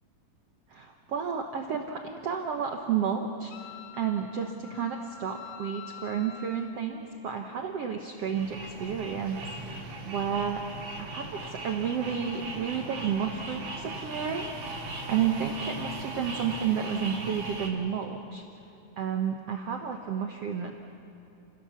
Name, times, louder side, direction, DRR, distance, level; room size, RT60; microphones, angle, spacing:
voice 1, 0.7-3.5 3.9-9.4 9.7-10.6 11.0-14.6 15.1-18.4 19.0-20.7, right 7 dB, 80° right, 3 dB, 1.4 m, -31 dB
Wind instrument woodwind instrument, 3.5-6.7, left 7 dB, 85° left, 1.4 m, -46 dB
Frogs and thunder, 8.2-17.7, right 2 dB, 50° right, 3.5 m, -38 dB
29.5 x 17.0 x 7.0 m, 2.9 s
omnidirectional pair, 4.3 m